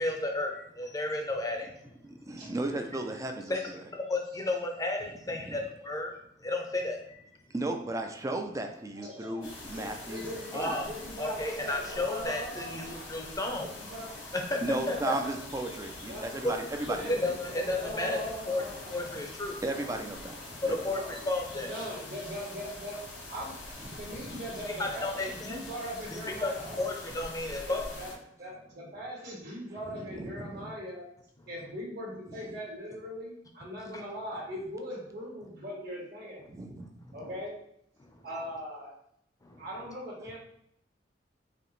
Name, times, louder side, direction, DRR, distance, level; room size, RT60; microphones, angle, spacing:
voice 1, 0.0-1.7 3.5-3.6 3.9-6.1 6.4-7.0 10.5-10.9 11.2-13.7 14.3-15.1 16.4-16.6 16.9-18.2 18.5-18.6 18.9-19.6 20.6-21.7 24.7-25.6 26.1-27.9 33.9-34.0 39.5-39.6, left 2 dB, 20° left, 2 dB, 0.6 m, -32 dB
voice 2, 2.0-3.6 5.3-5.6 7.5-10.7 14.6-17.1 19.6-20.8 24.2-24.4 29.9-30.7 36.5-37.2, right 2 dB, 20° right, 4 dB, 0.4 m, -35 dB
voice 3, 9.0-9.4 9.7-13.2 13.6-14.2 14.5-15.4 16.1-16.3 16.9-19.1 19.7-20.3 20.9-21.1 21.7-23.0 23.3-26.9 27.7-28.1 28.4-31.1 31.5-36.4 37.1-37.5 38.2-38.9 39.6-40.4, equal, 60° right, -5 dB, 1.7 m, -40 dB
sound 1, 9.4-28.1, left 2 dB, 85° left, 1.6 m, -44 dB
4.9 x 2.9 x 3.1 m, 0.73 s
head